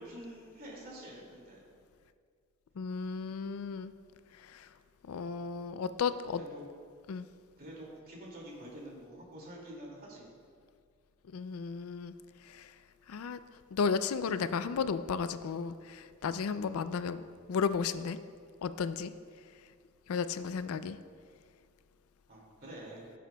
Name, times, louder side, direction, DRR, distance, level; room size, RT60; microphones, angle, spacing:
voice 1, 0.0-1.6 6.3-6.6 7.6-10.3 22.3-23.1, right 1 dB, 45° right, -3 dB, 2.2 m, -47 dB
voice 2, 2.8-3.9 5.1-6.4 7.1-7.3 11.3-12.1 13.1-13.4 13.7-17.2 17.5-18.2 18.6-19.1 20.1-21.0, left 5 dB, 75° left, 12 dB, 0.4 m, -33 dB
16.0 x 7.6 x 2.3 m, 2.1 s
head